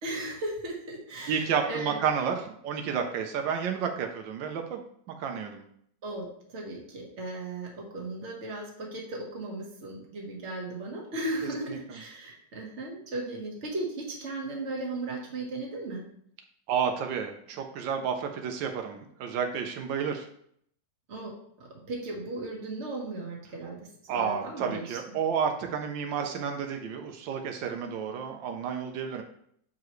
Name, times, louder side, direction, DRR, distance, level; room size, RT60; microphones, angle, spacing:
voice 1, 0.0-2.0 6.0-16.1 21.1-25.0, right 2 dB, 40° right, -1 dB, 1.5 m, -36 dB
voice 2, 1.3-4.8 5.1-5.7 11.7-11.8 16.7-20.3 24.1-29.2, right 7 dB, 85° right, 5 dB, 1.4 m, -31 dB
7.0 x 4.8 x 3.1 m, 0.66 s
omnidirectional pair, 2.0 m